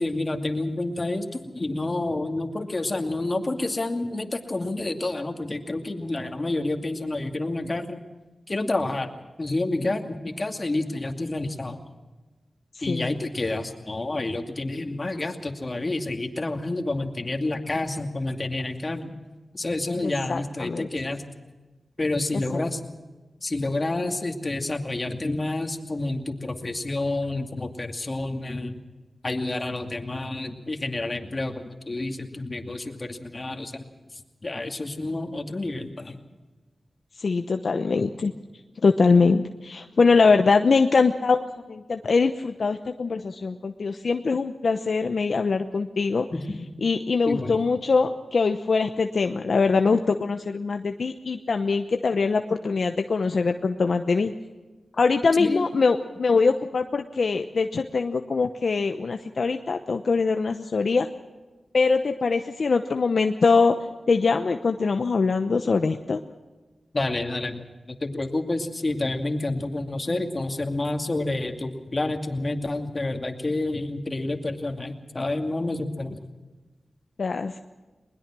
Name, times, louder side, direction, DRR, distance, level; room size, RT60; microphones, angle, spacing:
voice 1, 0.0-8.0 8.5-9.1 9.4-11.8 12.8-19.1 19.5-21.2 22.0-22.8 23.4-28.8 29.2-33.8 34.4-36.2 46.3-46.6 47.3-47.6 55.4-55.7 66.9-76.2, left 2 dB, 40° left, 4 dB, 2.4 m, -29 dB
voice 2, 20.0-20.9 22.5-22.6 37.2-38.3 38.8-46.2 46.8-54.3 55.0-61.1 61.7-63.8 64.1-66.2 77.2-77.6, left 4 dB, 70° left, 6 dB, 0.9 m, -23 dB
21.0 x 20.5 x 6.2 m, 1.2 s
cardioid pair, 55°, 0 cm